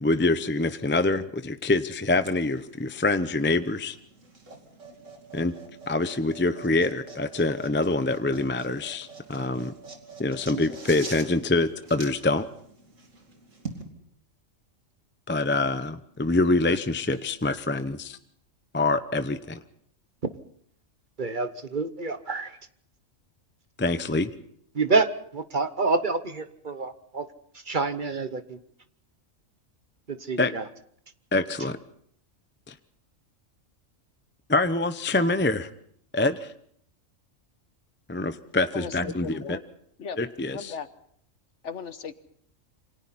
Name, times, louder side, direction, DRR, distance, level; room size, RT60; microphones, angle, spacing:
voice 1, 0.0-4.0 5.3-5.5 5.9-9.7 10.2-12.5 15.3-18.2 18.7-19.6 23.8-24.3 30.4-30.5 31.3-31.8 32.7-32.8 34.5-35.7 36.1-36.5 38.1-39.6 40.2-40.7, left 2 dB, 10° left, 10 dB, 0.6 m, -25 dB
sound 1, 2.2-13.8, right 3 dB, 75° right, 3.0 m, -45 dB
voice 2, 21.2-22.6 24.7-27.3 27.7-28.6 30.1-30.6, right 3 dB, 40° right, 10 dB, 1.1 m, -27 dB
voice 3, 38.7-39.6 40.0-40.2 40.5-40.9 41.6-42.1, left 6 dB, 65° left, 12 dB, 1.4 m, -36 dB
28.0 x 25.0 x 4.2 m, 0.65 s
omnidirectional pair, 1.3 m